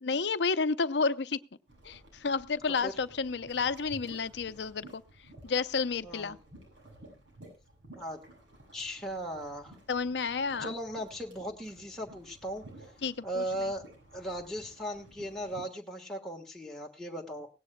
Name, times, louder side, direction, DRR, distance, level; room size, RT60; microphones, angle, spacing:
voice 1, 0.0-1.4 1.8-5.0 5.4-6.4 9.9-10.7 13.0-13.4, left 4 dB, 70° left, 14 dB, 0.6 m, -31 dB
sound 1, 1.7-15.6, right 1 dB, 90° right, 6.8 m, -54 dB
voice 2, 6.0-6.3 8.0-8.2 8.7-9.8 10.6-12.6 13.2-13.8 14.1-17.5, equal, 5° left, -1 dB, 1.4 m, -37 dB
18.0 x 17.5 x 2.3 m, 0.29 s
head